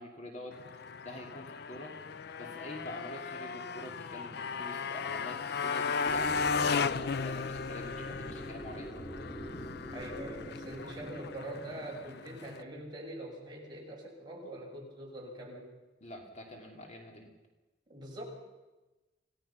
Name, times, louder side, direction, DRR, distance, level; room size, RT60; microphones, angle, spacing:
voice 1, 0.0-1.9 2.4-6.4 6.7-8.9 16.0-17.3, left 1 dB, 40° left, 1 dB, 2.9 m, -46 dB
Motorcycle, 0.5-12.6, left 5 dB, 60° left, 0.6 m, -36 dB
sound 1, 6.0-12.7, equal, 20° left, 3.1 m, -45 dB
voice 2, 9.9-15.7 17.9-18.2, right 1 dB, 25° right, -3 dB, 6.2 m, -43 dB
27.0 x 17.5 x 5.9 m, 1.1 s
head